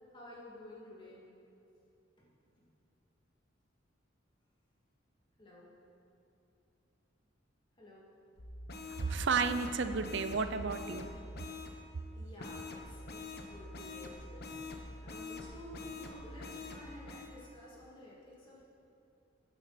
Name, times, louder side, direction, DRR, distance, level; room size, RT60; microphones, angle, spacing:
voice 1, 0.1-1.2 2.2-2.3 5.4-5.7 7.8-8.1 12.1-14.5 15.0-18.6, left 1 dB, 25° left, -5 dB, 2.7 m, -52 dB
sound 1, 8.4-11.8 12.4-17.3, left 3 dB, 55° left, 1.1 m, -45 dB
voice 2, 8.9-11.1, right 5 dB, 65° right, 9 dB, 0.6 m, -32 dB
15.0 x 9.2 x 4.4 m, 2.7 s
head